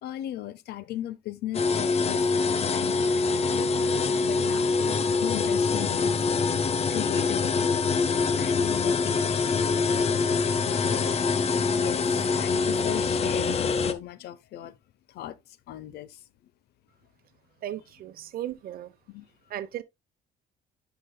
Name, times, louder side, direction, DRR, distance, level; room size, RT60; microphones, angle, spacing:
voice 1, 0.0-3.7 4.2-4.8 5.2-7.7 8.4-9.7 10.9-11.4 11.8-14.7 15.1-15.4 15.7-16.2 19.1-19.3, left 13 dB, 70° left, 0.8 m, -37 dB
sound 1, 1.5-13.9, left 4 dB, 35° left, 0.9 m, -25 dB
voice 2, 17.6-18.9 19.5-19.8, right 12 dB, 60° right, 0.9 m, -36 dB
9.9 x 6.0 x 2.2 m
cardioid pair, 110°, 17 cm